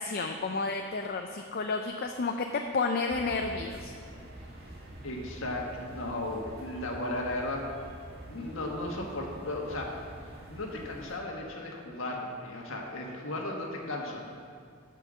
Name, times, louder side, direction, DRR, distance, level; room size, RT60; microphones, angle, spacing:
voice 1, 0.0-2.5 2.7-3.9, left 4 dB, 45° left, 4 dB, 0.5 m, -31 dB
sound 1, 3.1-11.2, right 1 dB, 50° right, 1.6 m, -46 dB
voice 2, 5.0-7.7 8.3-10.0 10.5-14.3, left 1 dB, 70° left, 0 dB, 1.5 m, -35 dB
8.8 x 5.8 x 7.4 m, 2.2 s
head